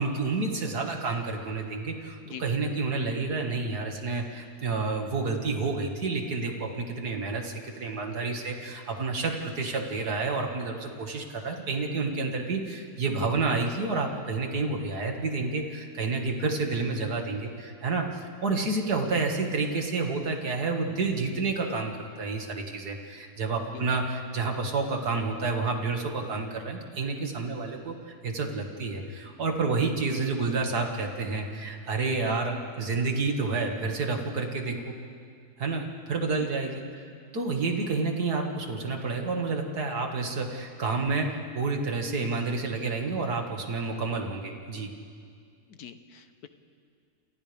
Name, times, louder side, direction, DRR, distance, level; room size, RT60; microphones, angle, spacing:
voice 1, 0.0-34.9 35.6-36.8 37.3-44.9, right 3 dB, 80° right, 2 dB, 2.6 m, -29 dB
voice 2, 45.7-46.5, left 8 dB, 75° left, 9 dB, 1.5 m, -44 dB
29.5 x 28.0 x 3.6 m, 2.2 s
omnidirectional pair, 1.7 m